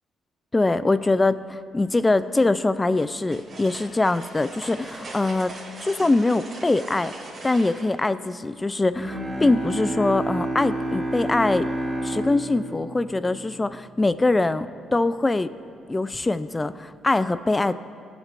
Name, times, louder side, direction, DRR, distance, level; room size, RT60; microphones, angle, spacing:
voice 1, 0.5-5.5 5.8-7.1 7.4-11.7 12.0-15.5 15.9-17.7, left 2 dB, 20° left, 14 dB, 0.3 m, -23 dB
sound 1, 2.9-7.9, right 2 dB, 45° right, 2.6 m, -40 dB
Bowed string instrument, 8.9-14.1, right 1 dB, 15° right, 1.8 m, -30 dB
17.0 x 8.2 x 2.5 m, 2.3 s
cardioid pair, 90°, 0 cm